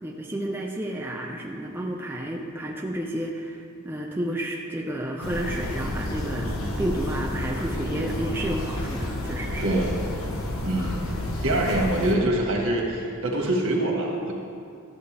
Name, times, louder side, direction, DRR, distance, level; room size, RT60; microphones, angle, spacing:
voice 1, 0.0-9.7, right 1 dB, 10° right, -1 dB, 0.5 m, -31 dB
sound 1, 5.2-12.2, left 1 dB, 75° left, 1.1 m, -30 dB
voice 2, 10.6-11.1 11.4-14.3, right 1 dB, 70° right, -1 dB, 1.7 m, -24 dB
12.5 x 8.1 x 3.4 m, 2.4 s
head